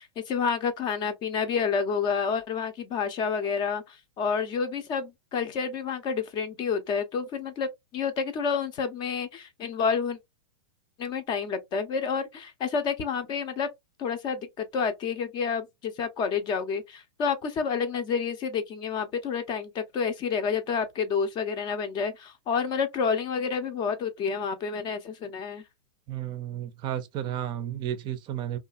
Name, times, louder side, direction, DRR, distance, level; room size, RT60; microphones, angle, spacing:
voice 1, 0.0-7.7 7.9-10.2 11.0-13.7 14.0-25.6, left 6 dB, 30° left, 0.6 m, -29 dB
voice 2, 26.1-28.6, right 11 dB, 30° right, 0.5 m, -32 dB
2.7 x 2.4 x 2.4 m
hypercardioid pair, 130°, 16 cm